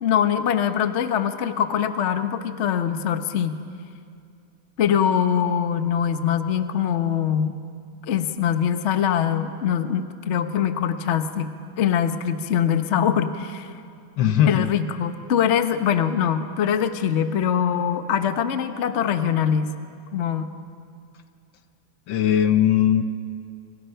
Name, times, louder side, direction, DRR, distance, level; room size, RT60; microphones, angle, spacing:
voice 1, 0.0-3.6 4.8-7.5 8.1-11.5 11.8-13.7 14.4-19.7 20.1-20.5, left 8 dB, 45° left, 8 dB, 1.0 m, -23 dB
voice 2, 14.2-14.7 22.1-23.0, left 10 dB, 65° left, 9 dB, 1.5 m, -19 dB
29.5 x 27.0 x 5.7 m, 2.4 s
omnidirectional pair, 2.4 m